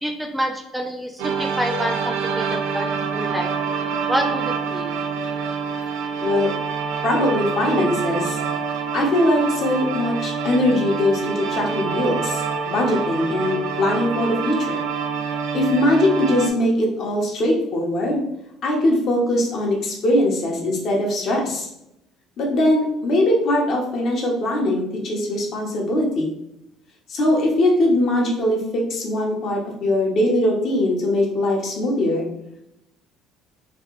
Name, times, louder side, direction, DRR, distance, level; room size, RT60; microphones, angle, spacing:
voice 1, 0.0-3.5 4.1-4.9, equal, 5° right, 4 dB, 0.3 m, -27 dB
sound 1, 1.2-16.5, right 6 dB, 85° right, 0.4 m, -26 dB
voice 2, 6.2-6.5 7.0-8.4 8.9-14.8 15.5-18.2 18.6-21.7 22.4-26.3 27.1-32.3, left 1 dB, 55° left, -1 dB, 1.0 m, -21 dB
3.1 x 2.3 x 3.0 m, 0.83 s
cardioid pair, 100°, 0 cm